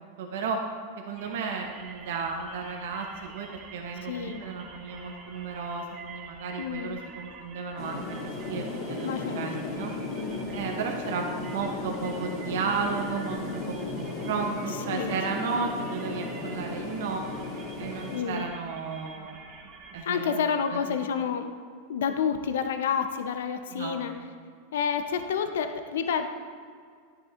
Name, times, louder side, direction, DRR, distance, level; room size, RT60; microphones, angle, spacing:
voice 1, 0.2-0.6 1.0-9.9 10.5-17.2 17.8-19.4 19.9-20.4 20.7-21.0 23.7-24.0, right 5 dB, 75° right, 2 dB, 0.9 m, -34 dB
sound 1, 1.2-20.0, right 4 dB, 40° right, 1.0 m, -48 dB
voice 2, 4.0-4.4 6.6-7.0 9.0-9.8 10.1-10.5 14.9-15.4 18.1-18.5 20.1-21.5 21.9-24.1 24.7-26.3, left 7 dB, 80° left, 8 dB, 0.6 m, -29 dB
sound 2, 7.8-18.2, left 3 dB, 60° left, 2.0 m, -35 dB
10.5 x 7.8 x 2.5 m, 2.1 s
hypercardioid pair, 115°, 0 cm